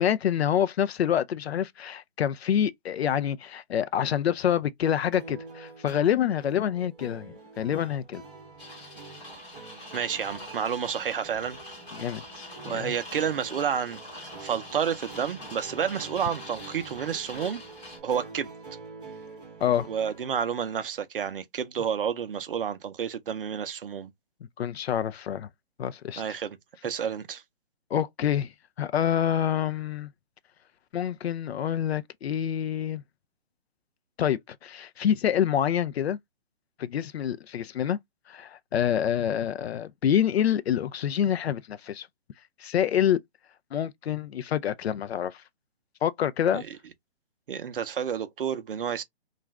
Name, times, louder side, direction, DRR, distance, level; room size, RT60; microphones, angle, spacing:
voice 1, 0.0-8.2 11.9-12.9 19.6-19.9 24.6-25.5 25.8-26.2 27.9-28.5 28.8-30.1 30.9-33.0 34.2-36.2 36.8-38.0 38.3-42.1 42.6-43.2 43.7-45.4 46.0-46.6, left 9 dB, 75° left, 0.5 m, -27 dB
sound 1, 5.1-20.4, right 4 dB, 5° right, 0.4 m, -46 dB
sound 2, 8.6-18.0, left 1 dB, 15° left, 1.2 m, -44 dB
voice 2, 9.9-11.6 12.6-17.6 18.0-18.5 19.9-24.1 26.2-26.6 26.8-27.4 46.5-46.6 47.5-49.0, right 8 dB, 55° right, 0.6 m, -30 dB
2.5 x 2.3 x 3.1 m
hypercardioid pair, 155°, 32 cm